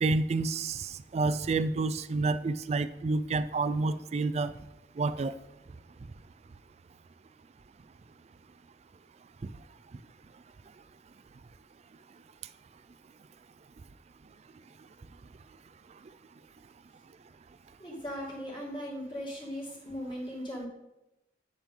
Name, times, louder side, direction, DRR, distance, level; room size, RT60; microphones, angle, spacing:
voice 1, 0.0-4.5 5.0-5.3, right 3 dB, 35° right, 13 dB, 0.3 m, -29 dB
voice 2, 17.8-20.7, equal, 25° left, -4 dB, 2.3 m, -38 dB
8.7 x 7.3 x 3.7 m, 0.92 s
head